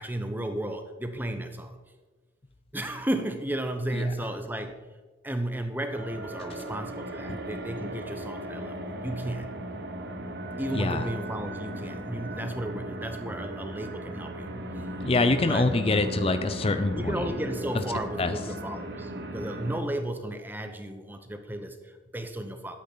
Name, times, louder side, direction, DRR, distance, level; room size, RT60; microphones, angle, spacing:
voice 1, 0.0-1.8 2.7-4.8 5.2-9.6 10.6-14.5 15.4-15.7 16.9-22.8, right 1 dB, 10° right, 7 dB, 0.8 m, -33 dB
sound 1, 5.9-19.8, equal, 50° right, 1.1 m, -37 dB
voice 2, 10.7-11.1 15.0-17.1 18.2-18.3, left 2 dB, 30° left, 10 dB, 0.5 m, -25 dB
12.0 x 8.6 x 4.0 m, 1.3 s
head